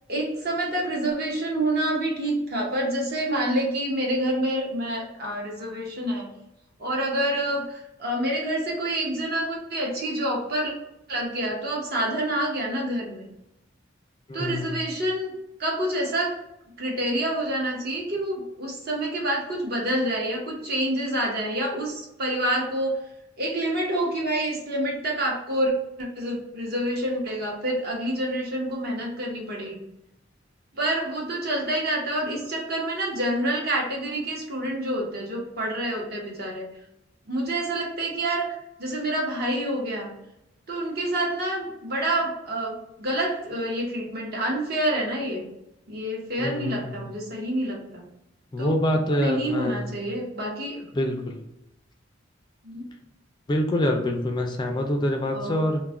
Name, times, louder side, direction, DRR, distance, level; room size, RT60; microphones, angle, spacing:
voice 1, 0.1-6.3 6.8-7.6 8.0-10.7 11.1-13.3 14.3-15.3 15.6-16.4 16.8-23.0 23.4-25.7 26.0-29.8 30.8-36.7 37.3-38.5 38.8-40.1 40.7-45.5 45.9-48.0 48.6-48.7 49.1-50.8 52.6-52.9 55.3-55.7, right 1 dB, 55° right, -1 dB, 0.8 m, -27 dB
voice 2, 14.3-14.9 46.4-47.1 48.5-49.9 50.9-51.4 53.5-55.8, left 1 dB, 25° left, 3 dB, 0.3 m, -26 dB
2.3 x 2.1 x 3.4 m, 0.86 s
head